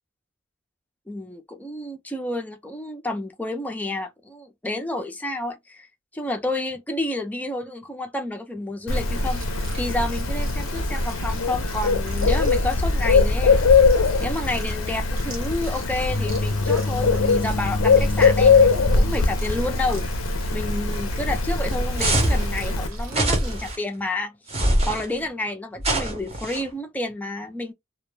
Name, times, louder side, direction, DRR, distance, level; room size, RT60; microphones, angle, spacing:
voice 1, 1.1-5.9 6.1-9.5 9.8-13.6 14.2-18.6 18.9-20.1 20.5-24.4 24.9-27.7, left 2 dB, 10° left, 0.4 m, -30 dB
Bird, 8.9-22.9, left 4 dB, 70° left, 0.5 m, -21 dB
sound 1, 8.9-23.8, equal, 75° right, 1.1 m, -35 dB
sound 2, 22.0-22.5 23.1-23.8 24.5-25.1 25.8-26.6, right 1 dB, 30° right, 0.7 m, -23 dB
2.2 x 2.1 x 3.1 m
head